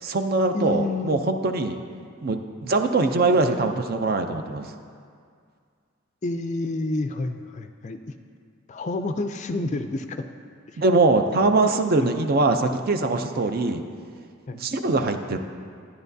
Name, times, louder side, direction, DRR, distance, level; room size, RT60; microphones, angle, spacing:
voice 1, 0.0-1.8 2.2-4.7 10.8-13.8 14.5-15.4, right 3 dB, 45° right, 6 dB, 0.5 m, -22 dB
voice 2, 0.5-1.2 6.2-8.0 8.7-10.2 10.7-10.8 12.0-12.1 14.5-14.6, left 2 dB, 35° left, 7 dB, 0.4 m, -29 dB
12.5 x 9.9 x 2.7 m, 2.2 s
head